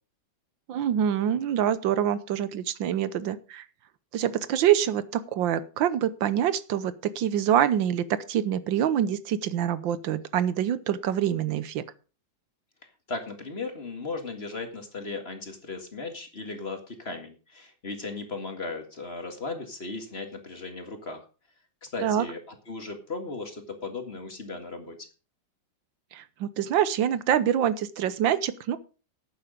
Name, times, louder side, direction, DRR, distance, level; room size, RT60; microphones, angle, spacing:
voice 1, 0.7-3.6 4.1-11.8 22.0-22.3 26.1-28.8, right 10 dB, 85° right, 15 dB, 1.6 m, -25 dB
voice 2, 13.1-21.3 21.8-25.1, left 3 dB, 35° left, 6 dB, 2.1 m, -36 dB
11.5 x 8.8 x 5.2 m, 0.35 s
omnidirectional pair, 2.0 m